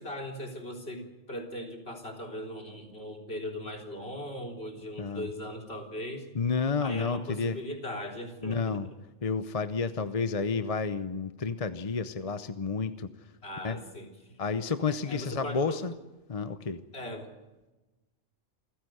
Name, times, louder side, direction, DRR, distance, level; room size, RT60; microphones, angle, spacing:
voice 1, 0.0-6.3 6.8-8.8 13.4-14.4 14.9-15.8 16.9-17.3, equal, 50° left, 2 dB, 3.9 m, -39 dB
voice 2, 5.0-5.3 6.3-7.6 8.4-8.9 9.2-13.3 13.6-13.8 14.4-15.9 16.3-16.8, left 5 dB, 35° left, 11 dB, 0.7 m, -31 dB
27.5 x 15.0 x 7.9 m, 1.1 s
omnidirectional pair, 1.4 m